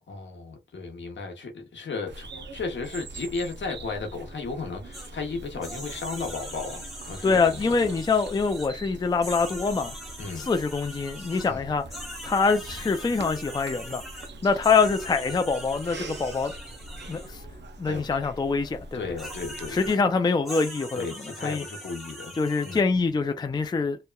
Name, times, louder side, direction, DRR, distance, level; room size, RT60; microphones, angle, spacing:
voice 1, 0.1-8.0 10.2-10.5 11.4-11.6 17.9-18.1 18.9-19.8 20.9-22.8, left 4 dB, 75° left, 0.9 m, -35 dB
Bird vocalization bird call bird song, 2.1-19.9, right 2 dB, 70° right, 0.5 m, -42 dB
sound 1, 4.9-5.1 5.6-8.7 9.1-11.5 11.9-17.3 19.2-20.0 20.5-22.8, equal, ahead, 0.8 m, -42 dB
voice 2, 7.2-10.0 10.4-11.9 12.2-14.0 14.4-16.5 17.1-17.4 17.8-19.0 19.7-21.1 21.4-21.6 22.4-24.0, left 4 dB, 25° left, 0.3 m, -24 dB
2.9 x 2.2 x 2.2 m
wide cardioid pair, 85°, 19 cm